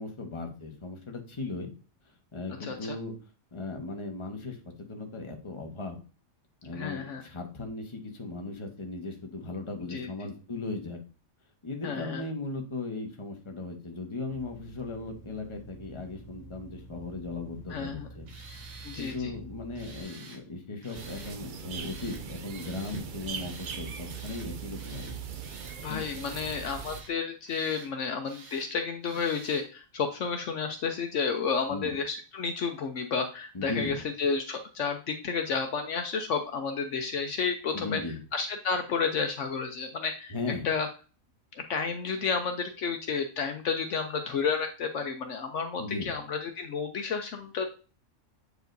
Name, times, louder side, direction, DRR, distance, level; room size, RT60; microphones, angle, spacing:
voice 1, 0.0-1.7 2.3-3.1 3.5-6.0 6.6-11.0 11.6-18.3 19.0-25.2 25.9-26.0 31.7-31.9 33.5-34.0 37.7-38.2 40.3-40.7 45.8-46.1, left 3 dB, 25° left, 3 dB, 1.1 m, -37 dB
voice 2, 2.6-3.0 6.7-7.2 9.9-10.1 11.8-12.2 17.7-18.1 18.8-19.3 25.8-38.0 38.3-40.9 41.6-47.7, left 5 dB, 65° left, 5 dB, 1.0 m, -31 dB
sound 1, 14.3-20.0, right 2 dB, 5° right, 1.0 m, -48 dB
Tools, 18.3-19.2 19.7-20.4 20.8-21.4 21.7-22.2 22.6-23.0 23.3-23.8 24.1-24.5 24.8-25.2 25.4-26.4 26.7-27.1 27.5-27.9 28.2-28.7 29.0-29.7, right 3 dB, 75° right, 1.8 m, -49 dB
sound 2, 20.9-27.0, right 7 dB, 55° right, 0.5 m, -40 dB
7.9 x 4.8 x 2.6 m, 0.35 s
omnidirectional pair, 1.4 m